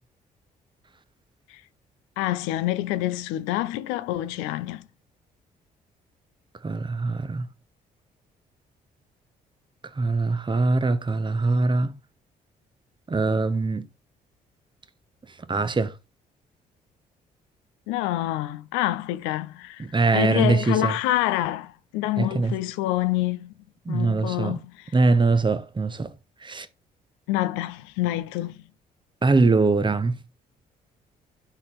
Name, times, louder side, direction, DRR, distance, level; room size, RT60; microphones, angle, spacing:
voice 1, 2.2-4.9 17.9-19.9 20.1-23.5 23.9-24.9 27.3-28.6, left 15 dB, 75° left, 0.5 m, -27 dB
voice 2, 6.6-7.5 10.0-11.9 13.1-13.9 15.5-15.9 19.8-20.9 22.2-22.5 23.9-24.6 24.9-26.1 26.4-26.7 29.2-30.1, right 3 dB, 25° right, 1.0 m, -22 dB
11.5 x 4.0 x 3.5 m
hypercardioid pair, 45°, 20 cm